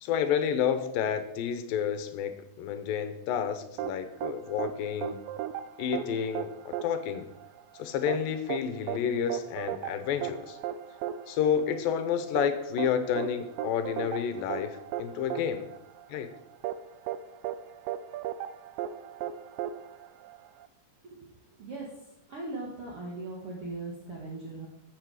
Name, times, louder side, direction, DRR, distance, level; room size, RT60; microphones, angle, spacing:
voice 1, 0.0-5.2 5.8-7.3 7.8-10.6 11.3-15.7 16.1-16.3, left 8 dB, 85° left, 10 dB, 2.6 m, -30 dB
sound 1, 3.8-20.7, right 11 dB, 80° right, 2.2 m, -37 dB
voice 2, 21.6-24.7, right 2 dB, 50° right, -3 dB, 2.3 m, -39 dB
13.5 x 7.5 x 4.9 m, 0.86 s
omnidirectional pair, 4.0 m